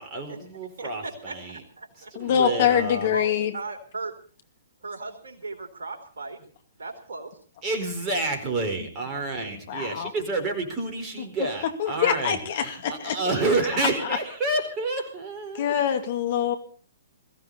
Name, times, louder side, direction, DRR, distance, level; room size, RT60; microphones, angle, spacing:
voice 1, 0.0-1.6 2.1-3.1 7.6-15.7, right 2 dB, 25° right, 3 dB, 4.6 m, -29 dB
voice 2, 0.8-2.1 3.1-4.1 4.8-6.4 6.8-7.3, right 3 dB, 65° right, 4 dB, 3.7 m, -37 dB
voice 3, 2.2-3.5 9.7-10.1 11.8-13.2 14.0-14.2 15.5-16.6, left 9 dB, 45° left, 6 dB, 2.3 m, -24 dB
21.5 x 15.5 x 4.2 m, 0.43 s
figure-of-eight pair, 120°, 0 cm